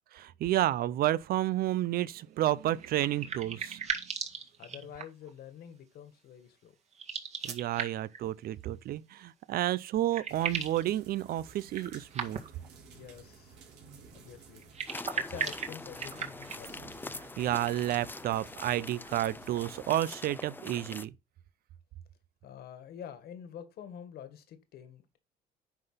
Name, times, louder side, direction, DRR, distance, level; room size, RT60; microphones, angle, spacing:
voice 1, 0.1-3.8 7.4-12.4 17.4-21.1, right 13 dB, 65° right, 0.6 m, -31 dB
sound 1, 2.8-5.3 6.9-8.2 9.6-9.7 9.9-10.9 11.7-12.7 14.6-16.7, right 6 dB, 40° right, 1.9 m, -37 dB
voice 2, 4.6-6.8 12.9-13.6 14.1-17.0 22.4-25.2, left 9 dB, 70° left, 2.0 m, -47 dB
sound 2, 10.3-20.0, right 5 dB, 80° right, 3.5 m, -54 dB
sound 3, 14.9-21.0, left 3 dB, 10° left, 0.5 m, -44 dB
10.5 x 4.1 x 5.7 m
cardioid pair, 110°, 17 cm